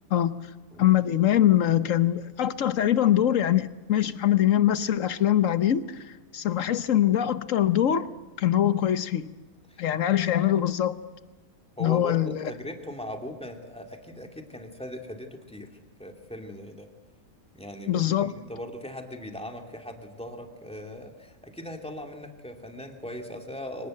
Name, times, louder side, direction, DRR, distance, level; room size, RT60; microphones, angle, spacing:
voice 1, 0.8-8.1 8.4-9.3 9.8-11.0 11.8-12.4 17.9-18.3, left 11 dB, 65° left, 12 dB, 1.3 m, -23 dB
voice 2, 11.8-16.9 17.5-23.9, left 1 dB, 5° left, 3 dB, 2.6 m, -39 dB
24.0 x 19.5 x 7.8 m, 1.2 s
omnidirectional pair, 1.5 m